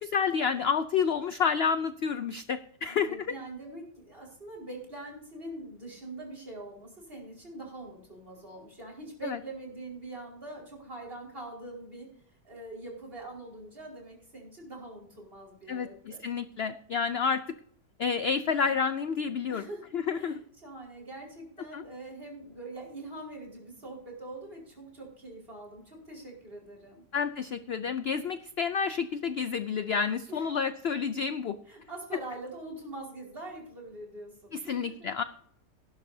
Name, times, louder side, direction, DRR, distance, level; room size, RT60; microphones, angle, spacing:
voice 1, 0.0-3.3 9.2-9.4 15.7-17.4 18.0-19.6 19.9-20.4 21.7-21.8 27.1-31.6 34.5-35.2, left 6 dB, 70° left, 11 dB, 0.6 m, -29 dB
voice 2, 2.9-12.1 12.4-16.2 19.5-19.8 20.1-27.0 30.3-30.5 31.7-35.1, right 2 dB, 35° right, 0 dB, 5.1 m, -43 dB
18.0 x 11.0 x 2.7 m, 0.63 s
omnidirectional pair, 1.7 m